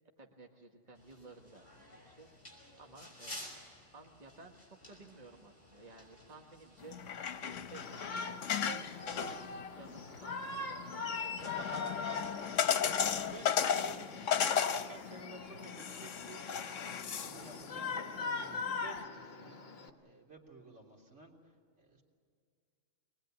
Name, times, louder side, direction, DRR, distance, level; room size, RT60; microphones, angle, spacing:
voice 1, 0.2-2.3 2.8-3.5 3.9-7.0 7.4-9.4 9.8-11.7 12.4-12.7 13.2-13.4, right 3 dB, 35° right, 1 dB, 1.6 m, -55 dB
sound 1, 0.9-13.4, left 1 dB, 40° left, 5.9 m, -55 dB
sound 2, 6.8-19.0, left 8 dB, 85° left, 1.2 m, -36 dB
Shout, 7.8-19.9, left 4 dB, 55° left, 1.5 m, -43 dB
voice 2, 11.5-12.9 13.2-22.0, right 2 dB, 70° right, -1 dB, 3.6 m, -54 dB
23.0 x 20.5 x 9.4 m, 2.2 s
omnidirectional pair, 1.3 m